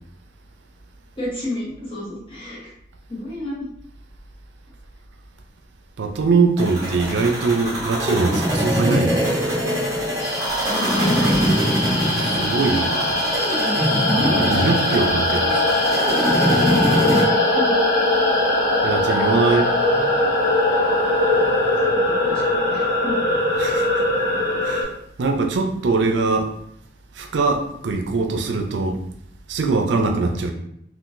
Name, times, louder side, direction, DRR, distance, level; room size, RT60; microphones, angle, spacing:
voice 1, 1.2-2.7 3.1-3.7 10.6-11.7 14.0-14.7 17.0-17.8 21.6-23.1, left 1 dB, 30° left, -7 dB, 1.1 m, -30 dB
voice 2, 6.0-9.4 12.1-13.2 14.2-15.8 18.8-19.7 23.6-24.0 24.6-24.9 25.2-26.5 27.1-29.0 29.5-30.5, right 3 dB, 85° right, 4 dB, 0.4 m, -22 dB
sound 1, 6.6-17.2, equal, 20° right, 0.8 m, -23 dB
sound 2, 10.2-24.8, left 1 dB, 80° left, 1.2 m, -21 dB
3.7 x 2.5 x 2.5 m, 0.73 s
head